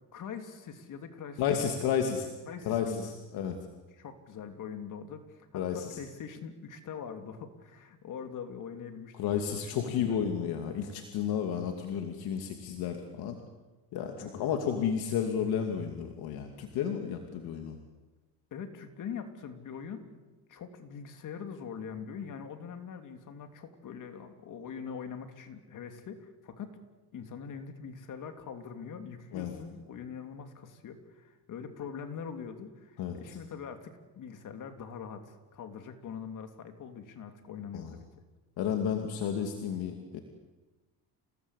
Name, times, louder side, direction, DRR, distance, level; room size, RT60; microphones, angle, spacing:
voice 1, 0.1-1.7 2.0-2.1 2.5-3.1 3.9-10.2 14.2-14.4 18.5-20.2 20.5-26.8 27.1-38.1, left 6 dB, 55° left, 7 dB, 3.1 m, -43 dB
voice 2, 1.4-2.3 2.6-3.6 5.5-6.0 9.2-13.4 13.9-17.8 29.3-29.5 33.0-33.2 37.7-37.9 38.6-40.2, left 8 dB, 75° left, 4 dB, 2.6 m, -32 dB
29.0 x 18.5 x 8.3 m, 1.2 s
cardioid pair, 105°, 38 cm